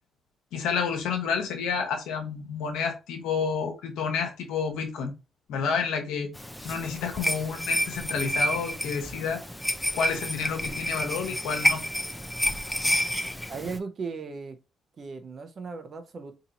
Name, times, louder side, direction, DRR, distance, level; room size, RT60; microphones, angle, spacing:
voice 1, 0.5-5.1 5.5-6.3 6.6-9.4 9.9-11.8, left 6 dB, 90° left, 0.9 m, -30 dB
sound 1, 6.4-13.8, equal, 5° left, 0.5 m, -29 dB
voice 2, 13.5-14.6 15.0-16.3, right 4 dB, 45° right, 0.7 m, -36 dB
2.9 x 2.7 x 3.9 m
cardioid pair, 90°, 0 cm